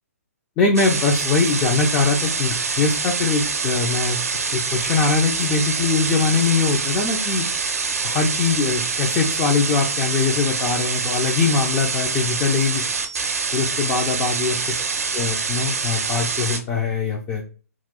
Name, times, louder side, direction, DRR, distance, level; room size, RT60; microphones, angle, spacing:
voice 1, 0.6-7.5 8.0-12.8 13.5-14.8 15.1-17.4, left 4 dB, 20° left, 1 dB, 0.5 m, -22 dB
sound 1, 0.8-16.6, right 5 dB, 60° right, 0.6 m, -25 dB
3.0 x 2.3 x 3.6 m, 0.36 s
figure-of-eight pair, 130°, 9 cm